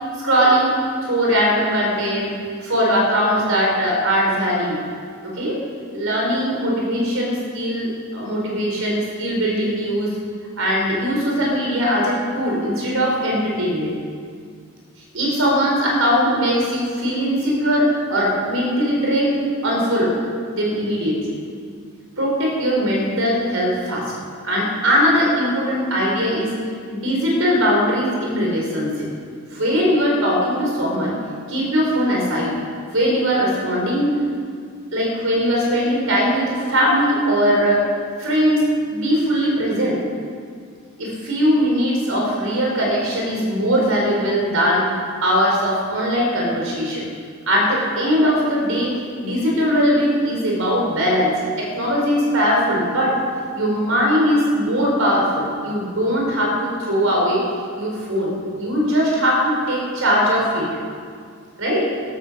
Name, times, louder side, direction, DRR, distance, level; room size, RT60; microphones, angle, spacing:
voice 1, 0.2-0.7 1.0-4.8 5.2-5.6 5.9-10.1 10.6-13.9 15.1-20.1 20.5-21.2 22.2-24.1 24.4-26.5 26.9-29.1 29.5-31.2 31.5-32.6 32.9-34.2 34.9-37.8 38.2-40.0 41.0-44.9 45.2-47.1 47.5-53.2 53.5-57.4 57.7-60.7 61.6-61.9, equal, 70° right, -2 dB, 4.9 m, -20 dB
15.0 x 12.5 x 6.5 m, 2.1 s
head